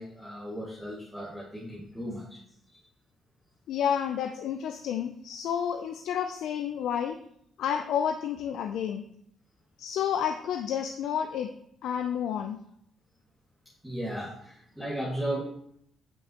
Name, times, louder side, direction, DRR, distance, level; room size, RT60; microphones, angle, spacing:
voice 1, 0.0-2.4 2.7-2.8 13.8-15.4, right 1 dB, ahead, -8 dB, 1.9 m, -35 dB
voice 2, 3.7-7.2 7.6-9.0 9.8-11.5 11.8-12.6, left 8 dB, 80° left, 7 dB, 0.4 m, -30 dB
8.4 x 5.3 x 2.9 m, 0.70 s
cardioid pair, 90°, 0 cm